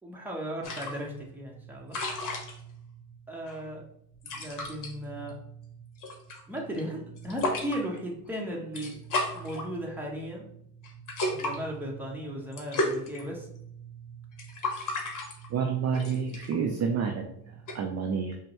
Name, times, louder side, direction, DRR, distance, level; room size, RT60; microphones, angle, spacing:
voice 1, 0.0-2.0 3.3-3.8 4.2-5.4 6.5-8.9 9.3-10.5 11.3-13.5, equal, 5° right, -2 dB, 1.1 m, -36 dB
sound 1, 0.6-17.8, left 1 dB, 40° left, 1.1 m, -37 dB
voice 2, 15.5-17.4 17.7-18.4, right 6 dB, 35° right, 3 dB, 0.5 m, -29 dB
5.1 x 2.3 x 3.0 m, 0.71 s
hypercardioid pair, 75°, 50 cm